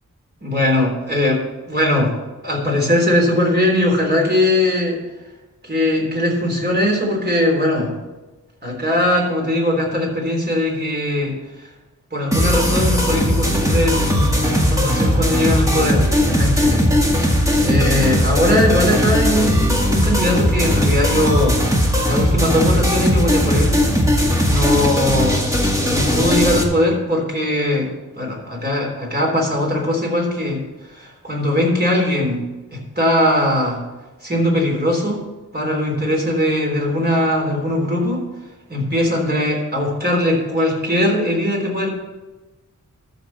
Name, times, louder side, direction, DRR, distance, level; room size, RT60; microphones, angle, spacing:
voice 1, 0.4-2.1 2.4-5.0 5.6-8.0 8.6-11.7 12.1-16.8 17.2-21.6 22.1-23.8 24.5-25.5 25.8-27.9 28.2-30.6 30.9-32.4 32.7-33.8 34.2-35.2 35.5-38.2 38.7-41.9, left 1 dB, 30° right, -1 dB, 3.5 m, -20 dB
sound 1, 12.3-26.6, equal, 10° right, 1.9 m, -18 dB
13.0 x 4.5 x 7.2 m, 1.1 s
wide cardioid pair, 75°, 31 cm